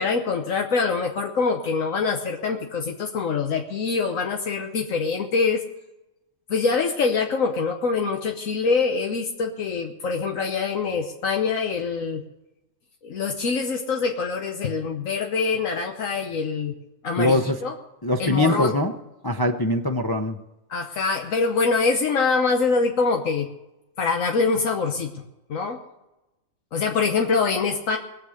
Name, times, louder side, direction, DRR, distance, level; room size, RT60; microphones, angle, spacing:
voice 1, 0.0-5.6 6.5-12.2 13.0-16.7 17.0-17.7 18.2-18.8 20.7-23.5 24.0-25.2 25.5-25.8 26.7-28.0, left 4 dB, 85° left, 3 dB, 1.4 m, -24 dB
voice 2, 17.2-17.6 18.0-18.9 19.2-20.4, left 1 dB, 20° left, 2 dB, 0.6 m, -22 dB
20.5 x 7.6 x 6.5 m, 0.96 s
omnidirectional pair, 1.3 m